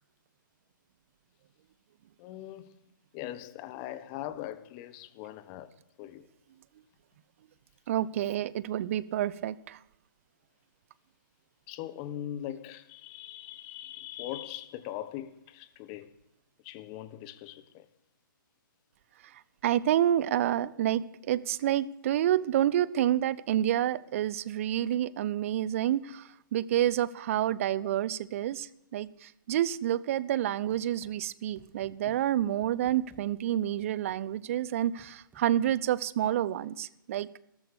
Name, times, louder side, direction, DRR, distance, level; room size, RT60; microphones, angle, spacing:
voice 1, 2.2-2.8 3.1-5.7 6.0-6.3 11.7-16.1 16.6-17.9 27.8-27.9 32.0-32.2, left 12 dB, 25° left, 1.1 m, -41 dB
voice 2, 7.9-9.8 19.6-28.7 28.9-37.3, right 11 dB, 40° right, 0.7 m, -28 dB
sound 1, 30.7-31.1 31.6-31.9 32.4-33.2 33.8-34.2 35.0-35.8, right 5 dB, 15° right, 3.4 m, -57 dB
14.0 x 13.5 x 6.7 m
figure-of-eight pair, 125°, 11 cm